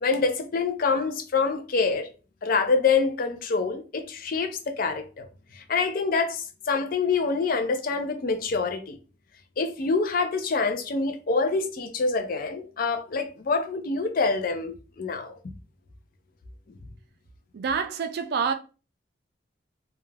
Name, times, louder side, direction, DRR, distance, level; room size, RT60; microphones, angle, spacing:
voice 1, 0.0-2.1 2.4-5.3 5.5-9.0 9.6-15.4, left 4 dB, 45° left, 0.4 m, -26 dB
voice 2, 17.5-18.5, right 6 dB, 55° right, 0.3 m, -27 dB
2.4 x 2.1 x 3.1 m
head